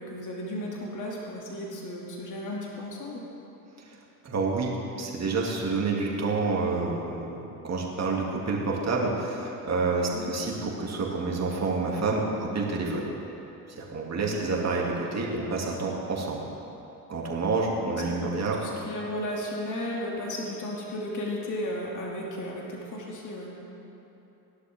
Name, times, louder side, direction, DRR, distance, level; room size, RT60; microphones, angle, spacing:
voice 1, 0.0-3.2 10.1-10.3 14.3-14.6 17.8-17.9 18.2-23.5, left 1 dB, 40° left, -3 dB, 2.7 m, -34 dB
voice 2, 4.2-13.1 13.7-16.4 17.1-18.6, right 3 dB, 30° right, -2 dB, 2.7 m, -28 dB
17.5 x 11.0 x 3.7 m, 3.0 s
figure-of-eight pair, 60°, 49 cm